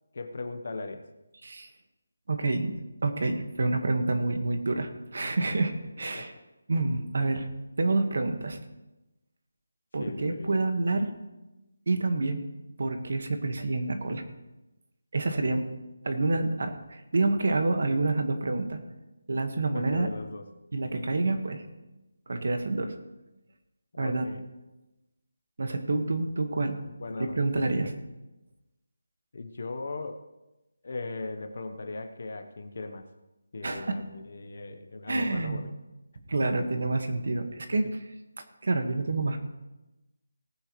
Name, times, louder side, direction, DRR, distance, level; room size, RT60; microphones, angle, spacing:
voice 1, 0.1-1.1 6.1-6.3 10.0-10.6 19.7-20.4 23.9-24.4 26.9-27.9 29.3-30.2 30.8-33.1 33.5-35.7 36.4-36.6 37.5-37.6, left 3 dB, 40° left, 8 dB, 0.9 m, -38 dB
voice 2, 2.3-2.7 3.0-6.3 6.7-7.5 7.8-8.6 9.9-11.1 11.9-12.4 12.8-14.2 15.1-15.7 16.0-18.8 19.3-20.1 20.7-21.6 22.3-22.9 24.0-24.3 25.6-26.8 27.4-27.9 33.6-33.9 35.1-35.7 36.3-38.1 38.6-39.4, right 2 dB, 50° right, 6 dB, 1.5 m, -28 dB
18.5 x 9.7 x 3.1 m, 1.0 s
figure-of-eight pair, 180°, 0 cm